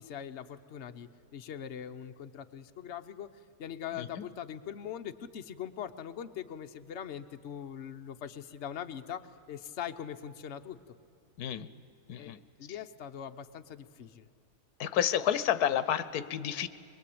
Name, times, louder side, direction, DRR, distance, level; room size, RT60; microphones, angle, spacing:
voice 1, 0.0-3.3 3.6-10.8 12.2-14.3, left 9 dB, 55° left, 7 dB, 1.1 m, -42 dB
voice 2, 11.4-11.7 12.1-12.4 14.8-16.7, left 10 dB, 90° left, 14 dB, 1.3 m, -30 dB
23.0 x 22.0 x 8.6 m, 2.6 s
omnidirectional pair, 1.6 m